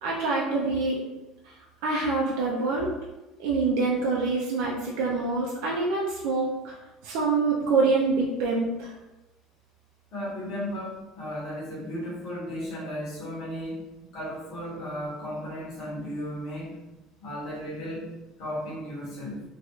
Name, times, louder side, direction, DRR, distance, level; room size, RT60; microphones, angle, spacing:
voice 1, 0.0-1.0 1.4-1.5 1.8-2.9 3.4-6.8 7.0-8.9, right 3 dB, 65° right, -4 dB, 0.5 m, -26 dB
voice 2, 10.1-13.9 14.1-16.8 17.2-18.1 18.4-19.4, equal, 40° left, -8 dB, 1.3 m, -35 dB
3.0 x 2.5 x 3.0 m, 1.0 s
cardioid pair, 180°, 0 cm